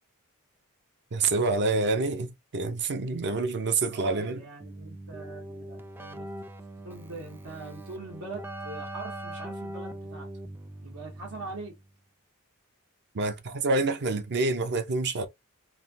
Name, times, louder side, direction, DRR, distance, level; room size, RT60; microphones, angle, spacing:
voice 1, 1.1-4.4 13.1-15.3, right 3 dB, 50° right, 0.6 m, -27 dB
voice 2, 3.9-6.3 6.8-10.3 10.8-11.7, right 3 dB, 75° right, 1.1 m, -42 dB
Keyboard (musical), 4.6-11.9, right 1 dB, 10° right, 0.3 m, -41 dB
3.2 x 2.2 x 2.6 m
head